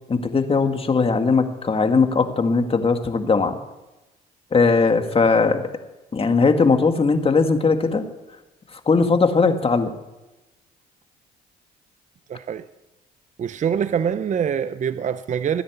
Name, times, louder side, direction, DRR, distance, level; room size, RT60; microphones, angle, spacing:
voice 1, 0.1-3.6 4.5-5.6 6.1-8.0 8.9-9.9, left 4 dB, 30° left, 1.9 m, -19 dB
voice 2, 12.3-12.7 13.4-15.6, right 8 dB, 45° right, 0.7 m, -24 dB
16.0 x 10.0 x 8.1 m
cardioid pair, 80°, 18 cm